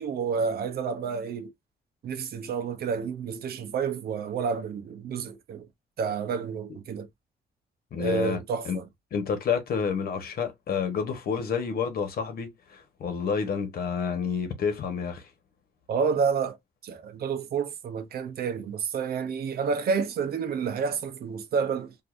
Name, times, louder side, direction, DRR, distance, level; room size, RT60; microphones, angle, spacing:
voice 1, 0.0-1.5 2.0-5.7 6.0-7.1 7.9-8.9 15.9-16.6 16.8-21.9, right 6 dB, 65° right, 0.8 m, -29 dB
voice 2, 7.9-8.8 9.1-15.3, left 6 dB, 60° left, 1.3 m, -29 dB
5.1 x 2.7 x 2.5 m
wide cardioid pair, 165°, 17 cm